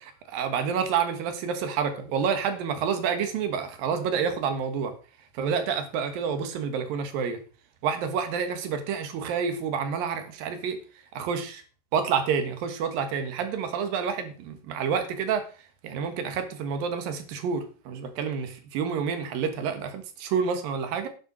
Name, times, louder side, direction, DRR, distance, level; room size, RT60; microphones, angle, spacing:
voice 1, 0.0-4.9 5.3-7.4 7.8-10.8 11.1-11.6 11.9-15.4 15.8-21.1, right 6 dB, 80° right, 8 dB, 3.3 m, -28 dB
10.0 x 6.7 x 6.2 m, 0.37 s
omnidirectional pair, 4.0 m